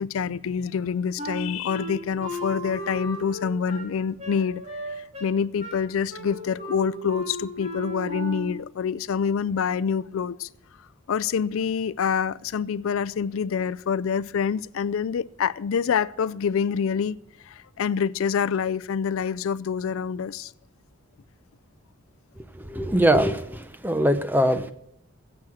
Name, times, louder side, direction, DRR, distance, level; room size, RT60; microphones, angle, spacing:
voice 1, 0.0-4.6 5.0-10.5 11.1-17.2 17.5-20.5, left 6 dB, 75° left, 0.4 m, -26 dB
Wind instrument woodwind instrument, 1.2-8.6, right 1 dB, 30° right, 3.5 m, -36 dB
voice 2, 22.7-24.7, right 1 dB, 10° right, 0.6 m, -22 dB
15.5 x 7.8 x 6.2 m
head